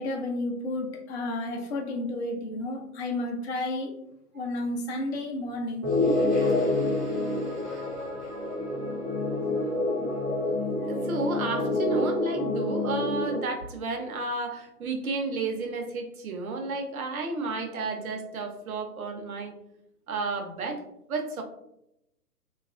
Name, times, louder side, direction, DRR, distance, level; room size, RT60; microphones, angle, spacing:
voice 1, 0.0-3.9 4.3-5.8, left 2 dB, 45° left, 1 dB, 0.5 m, -31 dB
sound 1, 5.8-13.4, left 2 dB, 15° right, 0.4 m, -27 dB
voice 2, 10.5-19.5 20.1-20.8 21.1-21.4, right 3 dB, 60° right, 4 dB, 0.7 m, -32 dB
2.8 x 2.3 x 2.4 m, 0.81 s
figure-of-eight pair, 135°, 48 cm